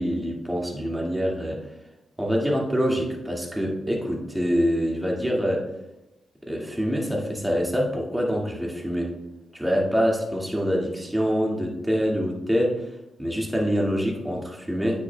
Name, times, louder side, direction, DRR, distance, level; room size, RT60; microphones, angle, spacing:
voice 1, 0.0-1.7 2.2-5.7 6.5-9.2 9.5-15.0, equal, 10° right, -2 dB, 2.1 m, -25 dB
8.8 x 7.2 x 2.3 m, 0.93 s
hypercardioid pair, 40°, 0 cm